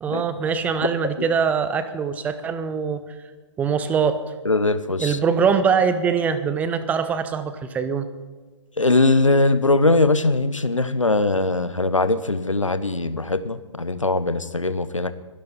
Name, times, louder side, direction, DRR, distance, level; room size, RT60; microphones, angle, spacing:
voice 1, 0.0-3.0 3.6-4.2 5.0-8.1, right 6 dB, 10° right, 12 dB, 0.6 m, -23 dB
voice 2, 4.4-5.2 8.8-15.1, left 2 dB, 85° left, 14 dB, 0.9 m, -21 dB
22.5 x 11.5 x 4.1 m, 1.3 s
figure-of-eight pair, 125°, 16 cm